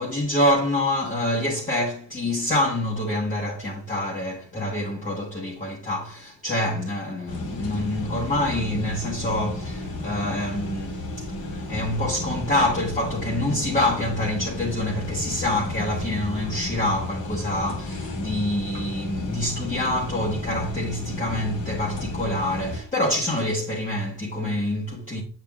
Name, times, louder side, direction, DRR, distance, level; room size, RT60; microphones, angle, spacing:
voice 1, 0.0-25.2, left 1 dB, 20° left, 1.2 m, -26 dB
sound 1, 7.3-22.8, left 2 dB, 60° left, 1.5 m, -33 dB
7.3 x 7.2 x 2.4 m
wide cardioid pair, 120°, 41 cm